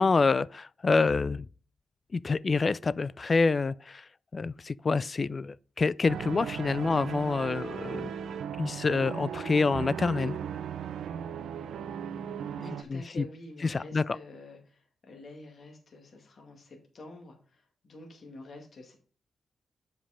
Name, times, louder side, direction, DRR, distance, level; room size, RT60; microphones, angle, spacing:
voice 1, 0.0-1.5 2.1-4.1 4.3-8.1 8.6-10.4 12.9-13.2 13.6-14.0, left 4 dB, 45° left, 0.3 m, -27 dB
sound 1, 6.1-12.8, right 8 dB, 80° right, 0.5 m, -37 dB
voice 2, 12.6-19.0, left 1 dB, 60° left, 2.0 m, -48 dB
7.5 x 5.3 x 5.0 m
cardioid pair, 60°, 0 cm